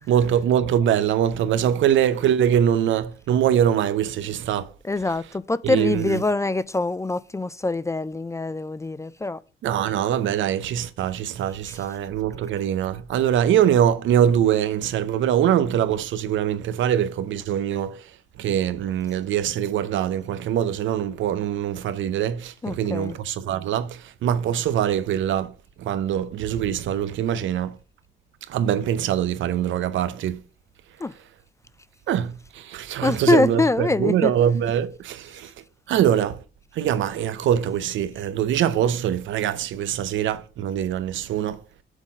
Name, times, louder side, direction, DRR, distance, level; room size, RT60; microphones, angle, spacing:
voice 1, 0.1-4.7 5.6-6.2 9.6-18.0 18.4-25.5 25.8-27.7 28.5-30.4 32.1-35.5 35.9-36.4 36.8-41.6, right 10 dB, 75° right, 0.7 m, -23 dB
voice 2, 4.8-9.4 11.7-11.8 22.6-23.2 31.0-31.1 33.0-34.3, left 3 dB, 15° left, 0.3 m, -24 dB
6.4 x 3.9 x 6.1 m
cardioid pair, 90°, 20 cm